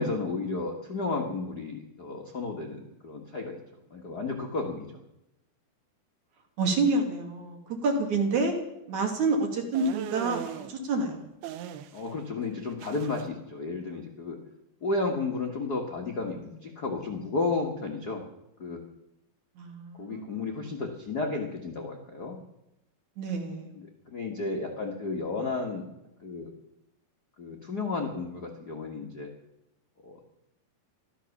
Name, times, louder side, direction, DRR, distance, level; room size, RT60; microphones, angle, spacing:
voice 1, 0.0-3.6 3.9-4.9 11.9-14.4 14.8-18.2 18.6-18.8 20.0-22.4 23.8-25.9 26.2-26.5 27.4-29.3 30.0-30.2, left 3 dB, 80° left, 1 dB, 0.8 m, -32 dB
voice 2, 6.6-8.5 8.9-11.3 19.6-20.7 23.2-23.7, right 3 dB, 50° right, 2 dB, 3.5 m, -28 dB
sound 1, 9.7-10.7 11.4-12.2 12.4-13.2, right 9 dB, 80° right, 2.9 m, -39 dB
15.0 x 13.0 x 7.2 m, 0.88 s
omnidirectional pair, 4.5 m